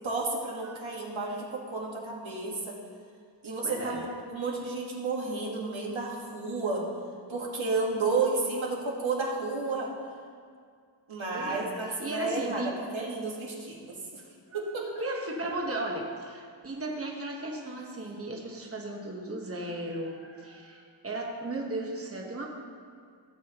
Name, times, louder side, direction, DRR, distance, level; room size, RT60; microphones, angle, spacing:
voice 1, 0.0-2.8 3.4-6.9 7.3-9.9 11.1-12.6 12.9-14.2 14.5-14.9 17.6-17.7, right 3 dB, 80° right, -3 dB, 1.7 m, -32 dB
voice 2, 3.6-4.0 11.3-11.7 12.0-12.7 14.5-14.6 15.0-22.5, right 2 dB, 30° right, -1 dB, 1.2 m, -35 dB
16.0 x 7.3 x 2.9 m, 2.2 s
wide cardioid pair, 75°, 46 cm